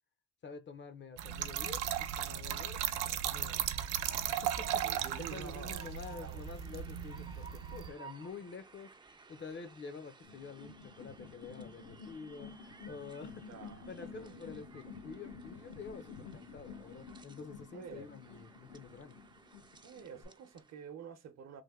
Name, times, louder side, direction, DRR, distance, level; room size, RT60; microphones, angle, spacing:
voice 1, 0.4-3.7 4.3-13.5 13.9-19.2, left 5 dB, 40° left, 0.5 m, -48 dB
Trickle dribble / Fill (with liquid), 1.2-7.9, right 10 dB, 90° right, 0.5 m, -36 dB
Train, 3.0-20.8, right 4 dB, 15° right, 0.3 m, -57 dB
voice 2, 4.8-6.4 13.5-13.9 14.1-14.4 17.7-18.1 19.8-21.6, right 7 dB, 60° right, 0.7 m, -48 dB
sound 1, 10.2-20.2, left 5 dB, 85° left, 0.9 m, -51 dB
3.3 x 2.1 x 3.5 m
cardioid pair, 90°, 30 cm